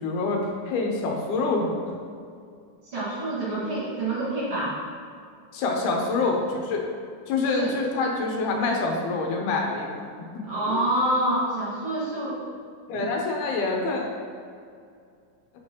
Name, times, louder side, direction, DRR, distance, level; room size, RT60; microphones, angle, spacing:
voice 1, 0.0-2.0 5.5-6.9 7.3-10.0 10.3-10.8 12.9-14.1, left 3 dB, 80° left, 0 dB, 2.3 m, -26 dB
voice 2, 2.9-4.7 7.5-7.7 10.4-12.4 12.9-13.0, right 1 dB, 50° right, -9 dB, 2.3 m, -27 dB
8.2 x 4.9 x 2.9 m, 2.3 s
omnidirectional pair, 3.5 m